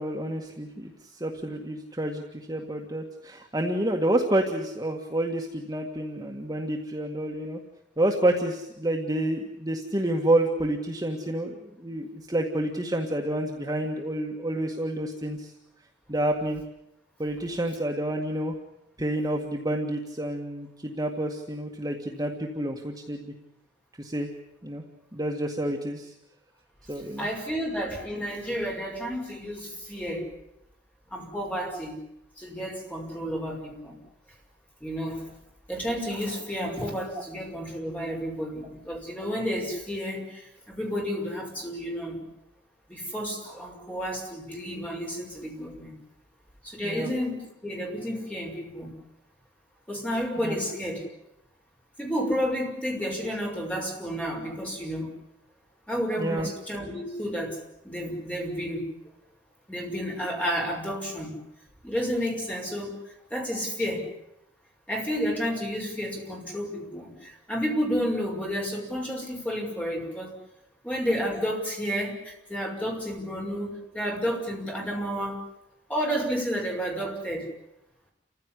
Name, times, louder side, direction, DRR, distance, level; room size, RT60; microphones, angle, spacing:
voice 1, 0.0-7.6 8.0-15.5 16.1-16.6 17.2-18.5 19.0-23.3 24.0-24.3 24.6-24.8 25.1-26.1 26.9-27.3 37.2-37.3 38.6-38.7 46.8-47.1 50.4-50.6 56.2-56.5, right 1 dB, 20° right, 1 dB, 1.9 m, -29 dB
voice 2, 27.2-30.3 31.1-31.9 32.4-34.0 34.8-35.3 35.7-42.2 42.9-46.0 46.6-48.9 49.9-51.1 52.0-55.1 55.9-58.8 59.7-61.3 61.8-62.9 63.3-64.1 64.9-70.3 70.8-75.4 75.9-77.5, equal, 10° left, 0 dB, 6.1 m, -31 dB
29.5 x 15.5 x 9.9 m, 0.83 s
head